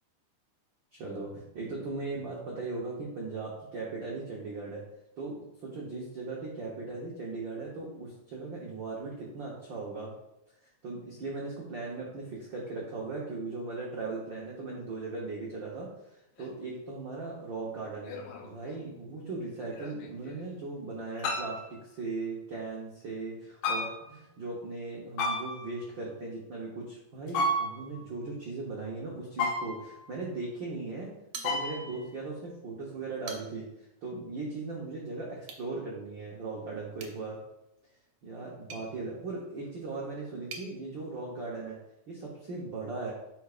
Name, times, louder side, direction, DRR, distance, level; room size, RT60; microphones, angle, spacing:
voice 1, 0.9-4.8 5.2-10.1 10.8-15.9 16.4-31.1 31.4-37.4 38.2-41.8 42.1-43.1, right 3 dB, 85° right, -4 dB, 1.0 m, -38 dB
sound 1, 16.4-16.5 18.0-18.7 19.7-20.4 21.2-21.7 23.6-24.2 25.2-25.8 27.3-28.0 29.4-30.1 31.4-32.0, left 1 dB, 75° left, 2.2 m, -33 dB
sound 2, 31.3-32.1 32.4-32.5 33.0-33.8 35.4-35.7 36.9-40.7, right 5 dB, 70° right, 2.0 m, -47 dB
9.9 x 4.7 x 2.5 m, 0.87 s
omnidirectional pair, 3.8 m